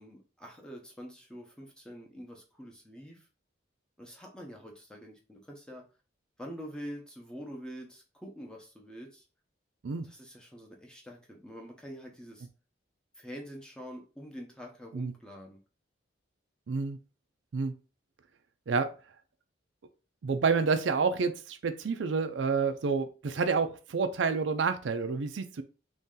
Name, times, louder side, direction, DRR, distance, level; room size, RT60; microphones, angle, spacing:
voice 1, 0.0-3.2 4.0-5.8 6.4-9.2 10.0-12.5 13.2-15.6, equal, 5° left, 0.7 m, -46 dB
voice 2, 16.7-17.0 17.5-17.7 18.7-18.9 20.2-25.6, right 5 dB, 85° right, 0.5 m, -29 dB
3.1 x 2.7 x 3.7 m
head